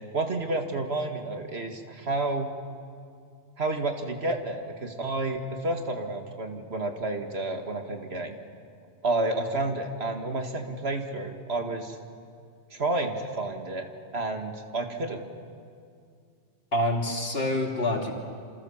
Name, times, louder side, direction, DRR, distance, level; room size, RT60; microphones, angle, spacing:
voice 1, 0.1-2.5 3.6-8.4 9.0-12.0 12.7-13.9 14.1-15.2, right 2 dB, 75° right, 4 dB, 2.3 m, -30 dB
voice 2, 16.7-18.1, left 1 dB, 65° left, 1 dB, 3.2 m, -26 dB
28.0 x 27.5 x 7.3 m, 2.3 s
omnidirectional pair, 1.1 m